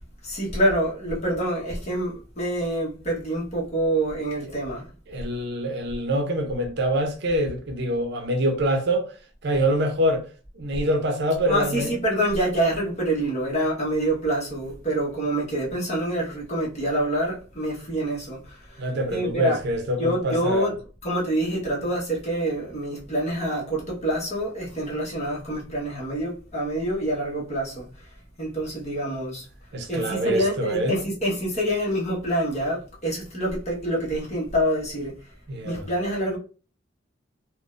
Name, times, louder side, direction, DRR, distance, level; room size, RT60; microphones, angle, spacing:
voice 1, 0.2-4.9 11.5-19.7 20.0-28.1 28.4-29.5 29.9-35.3 35.6-36.4, right 1 dB, 35° left, 1.2 m, -26 dB
voice 2, 5.1-9.1 9.4-10.3 10.5-11.9 18.8-20.7 29.7-31.0 35.5-35.9, right 1 dB, 60° right, 0.7 m, -25 dB
3.8 x 2.2 x 2.4 m
head